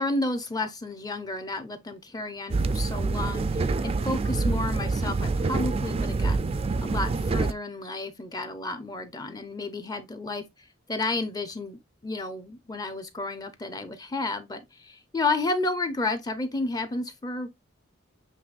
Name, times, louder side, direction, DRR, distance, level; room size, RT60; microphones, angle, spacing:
voice 1, 0.0-6.4 6.8-10.4 10.9-17.5, left 2 dB, 20° left, 0.6 m, -31 dB
sound 1, 2.5-7.5, right 3 dB, 30° right, 0.3 m, -26 dB
6.7 x 3.1 x 2.4 m
head